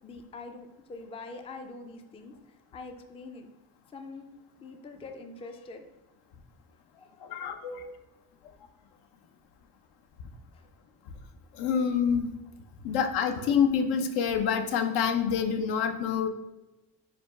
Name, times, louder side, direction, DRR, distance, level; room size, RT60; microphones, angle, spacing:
voice 1, 0.0-2.4 2.7-3.5 3.9-4.2 4.6-5.9 6.9-7.8 10.5-10.6, left 3 dB, 15° left, 6 dB, 0.3 m, -44 dB
voice 2, 7.2-7.9 11.5-12.3 12.8-16.3, left 7 dB, 75° left, 6 dB, 0.7 m, -27 dB
4.9 x 2.3 x 4.6 m, 1.1 s
cardioid pair, 115°, 39 cm